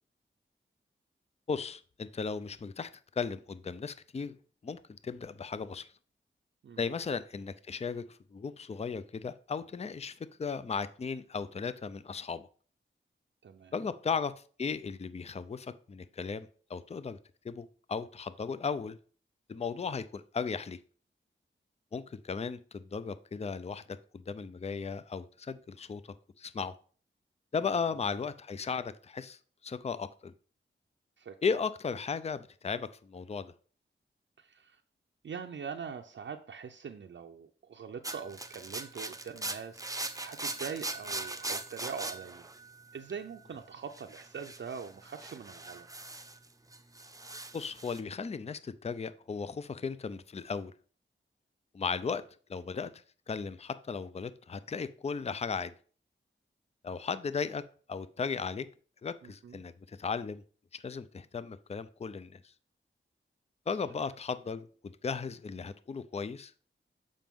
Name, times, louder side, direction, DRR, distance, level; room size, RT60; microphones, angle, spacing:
voice 1, 1.5-2.9 3.2-4.4 4.6-5.9 6.8-12.5 13.7-14.3 14.6-17.2 17.4-19.0 19.5-20.8 21.9-26.7 27.5-30.3 31.4-33.5 47.5-50.7 51.7-52.2 52.5-52.9 53.3-55.7 56.8-57.6 57.9-58.7 59.0-60.4 60.7-62.4 63.7-64.7 65.0-66.5, left 5 dB, 30° left, 14 dB, 0.4 m, -36 dB
voice 2, 13.4-13.9 27.6-27.7 31.2-31.4 34.4-34.8 35.2-42.5 42.9-45.9 59.2-59.6, right 6 dB, 65° right, 4 dB, 0.5 m, -43 dB
sound 1, 38.0-43.3 43.9-46.5 46.7-48.0, right 2 dB, 15° right, 0.7 m, -40 dB
7.4 x 5.1 x 3.6 m, 0.42 s
cardioid pair, 60°, 20 cm